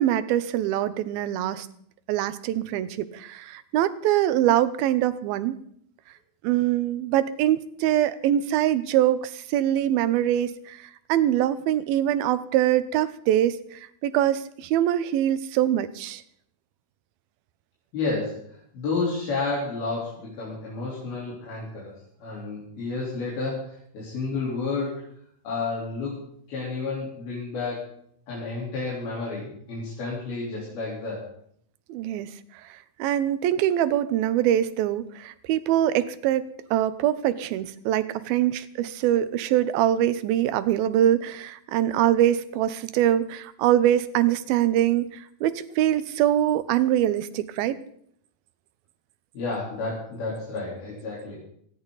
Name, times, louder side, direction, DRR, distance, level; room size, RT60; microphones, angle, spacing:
voice 1, 0.0-1.7 2.1-5.6 6.4-16.2 31.9-32.3 32.6-47.8, right 12 dB, 90° right, 14 dB, 2.7 m, -23 dB
voice 2, 17.9-21.9 22.2-25.0 25.4-26.2 26.5-27.9 28.3-31.3 49.3-51.4, left 3 dB, 90° left, -6 dB, 5.7 m, -31 dB
18.5 x 16.5 x 4.0 m, 0.67 s
omnidirectional pair, 4.1 m